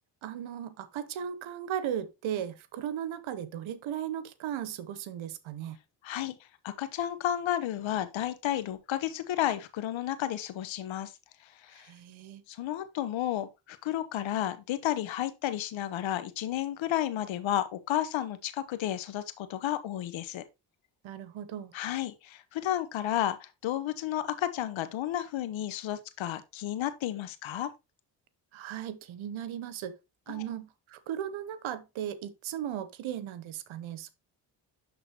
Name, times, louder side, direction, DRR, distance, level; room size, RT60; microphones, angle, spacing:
voice 1, 0.2-5.8 11.8-12.4 21.0-21.7 28.5-29.9 30.3-34.1, right 10 dB, 70° right, 1.0 m, -36 dB
voice 2, 6.0-6.3 6.6-11.1 11.6-11.9 12.5-20.4 21.7-27.7 30.3-30.4, left 12 dB, 70° left, 1.0 m, -32 dB
11.0 x 3.9 x 2.9 m
supercardioid pair, 50°, 49 cm